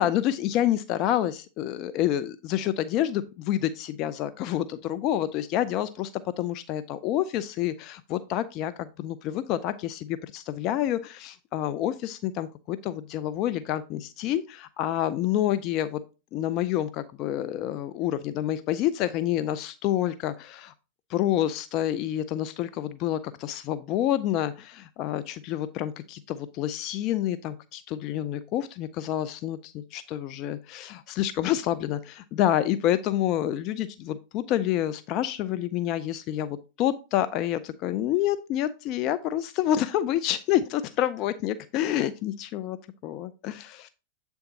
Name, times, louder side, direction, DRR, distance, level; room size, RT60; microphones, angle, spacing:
voice 1, 0.0-6.1 6.4-16.0 16.3-20.7 21.1-42.8 43.0-43.9, left 12 dB, 45° left, 12 dB, 0.4 m, -28 dB
7.9 x 3.5 x 4.0 m, 0.30 s
hypercardioid pair, 95°, 0 cm